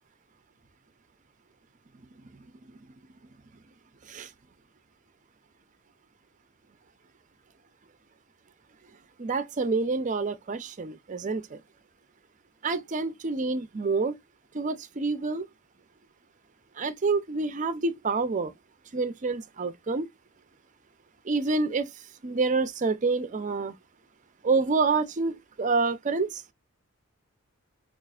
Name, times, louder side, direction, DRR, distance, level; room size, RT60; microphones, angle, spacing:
voice 1, 9.2-11.6 12.6-14.2 14.5-15.5 16.8-18.5 18.9-20.1 21.3-21.9 22.2-23.8 24.4-26.4, right 4 dB, 35° right, 0.5 m, -27 dB
5.2 x 2.4 x 2.3 m
head